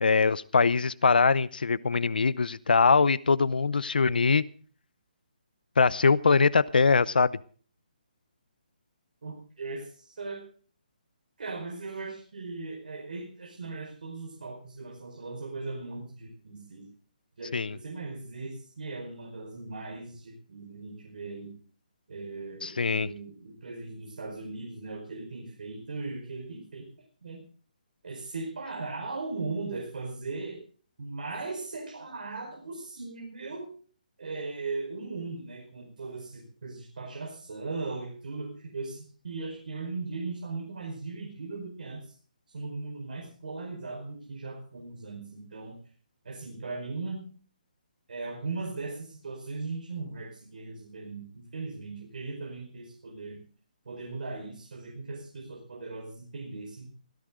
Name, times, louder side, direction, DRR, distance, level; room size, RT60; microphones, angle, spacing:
voice 1, 0.0-4.4 5.8-7.3 17.5-17.8 22.6-23.1, left 4 dB, 85° left, 20 dB, 0.8 m, -22 dB
voice 2, 9.2-10.5 11.4-16.9 17.4-21.6 22.1-26.9 27.2-27.4 28.0-30.6 31.0-33.7 34.2-42.1 42.5-45.8 46.2-47.3 48.1-53.4 53.8-56.9, right 3 dB, 70° right, 0 dB, 4.9 m, -38 dB
17.0 x 16.5 x 3.8 m, 0.42 s
hypercardioid pair, 170°, 5 cm